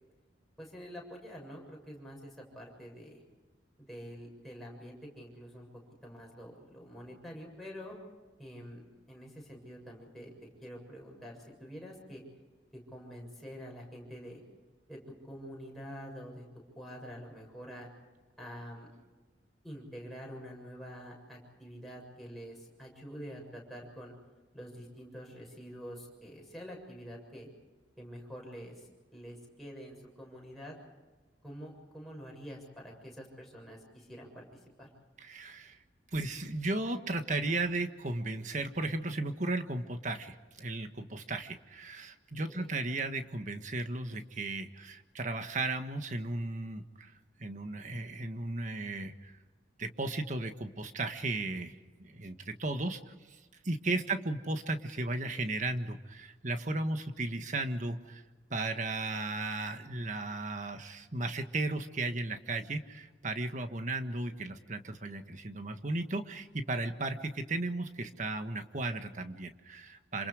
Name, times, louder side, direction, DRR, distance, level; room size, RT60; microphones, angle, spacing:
voice 1, 0.6-3.2 3.9-5.7 6.0-8.0 8.4-8.8 9.1-12.2 12.9-14.4 14.9-15.0 15.2-16.5 16.8-17.9 18.4-18.9 19.6-24.1 24.5-27.5 28.0-30.8 31.4-34.9 42.5-42.7, equal, ahead, -2 dB, 7.1 m, -47 dB
voice 2, 35.2-35.8 36.1-47.1 47.4-49.3 49.8-53.1 53.6-58.2 58.5-70.3, right 2 dB, 45° right, 7 dB, 1.6 m, -35 dB
27.5 x 27.0 x 5.0 m, 1.3 s
head